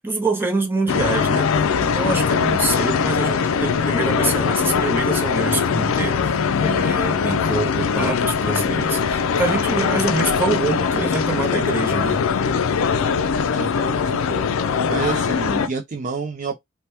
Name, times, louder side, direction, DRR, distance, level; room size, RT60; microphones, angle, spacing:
voice 1, 0.0-1.5 1.8-12.2, right 3 dB, 10° right, 0.8 m, -25 dB
sound 1, 0.9-15.7, left 6 dB, 70° left, 0.4 m, -21 dB
voice 2, 13.5-14.4 14.9-16.6, right 5 dB, 40° right, 0.4 m, -29 dB
2.8 x 2.2 x 3.3 m
head